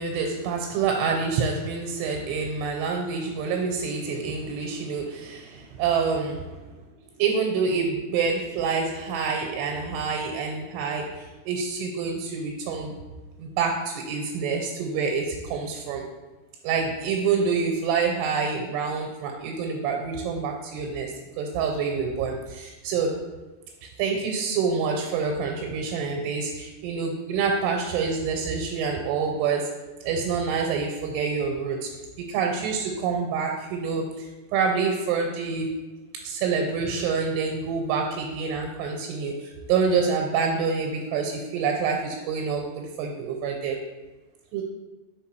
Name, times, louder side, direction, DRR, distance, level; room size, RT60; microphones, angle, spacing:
voice 1, 0.0-6.6 7.2-12.9 13.4-16.1 16.6-23.2 23.8-29.7 30.0-31.9 32.2-35.7 36.2-43.8 44.5-44.6, right 5 dB, 90° right, 1 dB, 2.8 m, -27 dB
5.5 x 4.2 x 4.5 m, 1.2 s
omnidirectional pair, 4.7 m